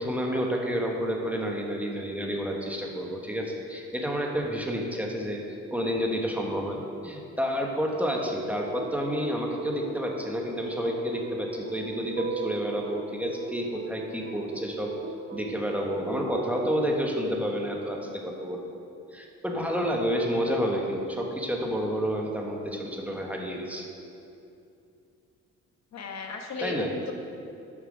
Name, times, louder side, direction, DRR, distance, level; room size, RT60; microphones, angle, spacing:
voice 1, 0.0-5.4 5.7-15.0 15.3-18.6 19.1-23.9 26.6-26.9, equal, 5° right, 0 dB, 1.2 m, -30 dB
sound 1, 8.0-17.0, right 4 dB, 40° right, 0.7 m, -38 dB
voice 2, 25.9-27.1, left 5 dB, 60° left, 3 dB, 1.2 m, -35 dB
7.4 x 5.6 x 6.4 m, 2.6 s
cardioid pair, 90°, 30 cm